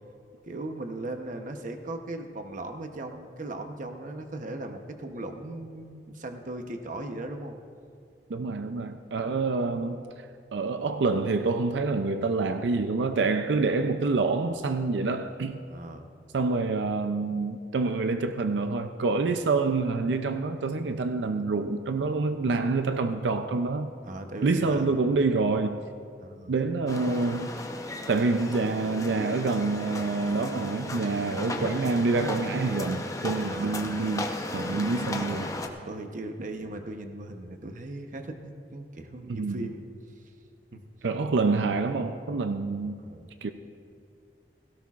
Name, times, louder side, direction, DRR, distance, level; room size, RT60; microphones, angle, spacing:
voice 1, 0.5-7.6 15.7-16.1 24.0-25.1 26.2-26.5 33.5-33.9 35.8-39.8 40.7-40.8 43.0-43.3, right 2 dB, 50° right, 5 dB, 0.9 m, -38 dB
voice 2, 8.3-10.0 10.5-15.6 16.3-23.9 24.4-25.8 26.5-27.5 28.1-35.5 39.3-39.7 41.0-43.0 43.4-43.5, right 3 dB, 85° right, 8 dB, 0.5 m, -27 dB
sound 1, 26.9-35.7, left 1 dB, 20° left, 0.8 m, -35 dB
17.0 x 16.5 x 2.5 m, 2.3 s
head